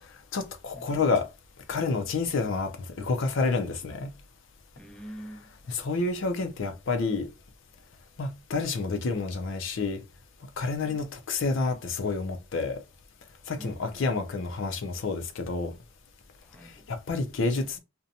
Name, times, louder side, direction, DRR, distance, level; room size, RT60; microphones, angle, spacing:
voice 1, 0.3-1.3 1.7-4.1 5.7-7.3 8.2-10.0 10.6-12.8 13.5-15.7 16.9-17.8, left 3 dB, 70° left, 0.4 m, -29 dB
voice 2, 4.8-5.5 10.8-11.0 13.6-14.2 16.4-16.9, right 1 dB, 5° left, 0.4 m, -45 dB
2.6 x 2.1 x 2.7 m
head